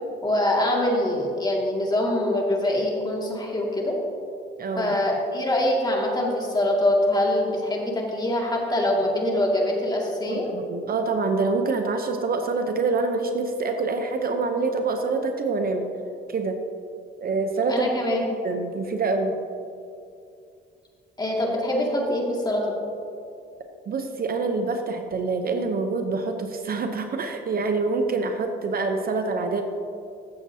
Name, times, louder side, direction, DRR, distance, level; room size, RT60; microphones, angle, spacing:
voice 1, 0.2-3.9 4.8-10.5 17.7-18.4 21.2-22.8, left 1 dB, 20° left, -2 dB, 2.1 m, -24 dB
voice 2, 4.6-4.9 10.3-15.9 16.3-16.6 17.2-18.2 18.4-19.4 23.9-29.6, right 3 dB, 50° right, 6 dB, 0.8 m, -26 dB
14.5 x 7.2 x 2.8 m, 2.5 s
cardioid pair, 90°, 20 cm